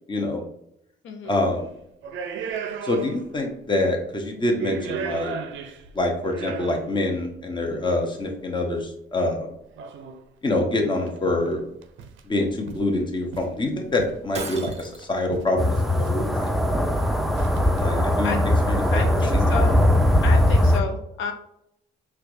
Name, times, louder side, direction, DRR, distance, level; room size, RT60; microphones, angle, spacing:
voice 1, 0.1-0.4 1.3-1.7 2.8-5.3 5.9-9.5 10.4-11.6 12.2-16.5 17.8-18.3 18.7-19.5, left 2 dB, 25° left, 2 dB, 0.8 m, -26 dB
voice 2, 1.0-1.4 18.2-18.4 18.9-19.8 20.2-21.3, left 6 dB, 80° left, 5 dB, 0.5 m, -31 dB
sound 1, 1.3-1.5 2.0-3.4 3.7-3.8 4.4-7.0 8.0-8.1 9.8-10.2 10.7-10.8 11.1-11.5 11.8-12.3 12.7-12.9 13.3-14.3 14.7-15.6 16.0-16.2 16.5-16.9 17.3-17.8, right 5 dB, 70° right, 0.4 m, -35 dB
Shatter, 14.3-15.2, right 4 dB, 35° right, 0.7 m, -35 dB
sound 2, 15.6-20.8, left 1 dB, ahead, 0.4 m, -20 dB
4.4 x 2.3 x 2.5 m, 0.76 s
cardioid pair, 90°, 20 cm